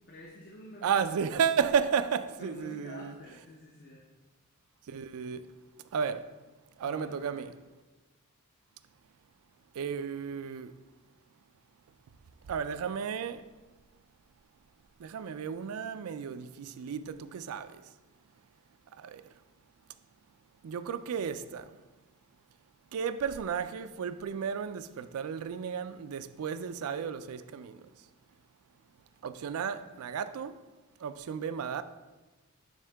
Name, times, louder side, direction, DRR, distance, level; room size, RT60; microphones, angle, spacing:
voice 1, 0.1-0.9 1.3-1.5 2.4-4.0 6.8-7.4 29.5-30.0, equal, 45° left, 0.7 m, -49 dB
voice 2, 0.8-3.2 4.9-5.5 5.9-6.3 6.8-7.5 9.7-10.7 12.5-13.4 15.0-17.8 18.9-19.2 20.6-21.8 22.9-27.9 29.2-30.6 31.0-31.8, right 7 dB, 70° right, 0.4 m, -33 dB
9.8 x 3.7 x 3.4 m
head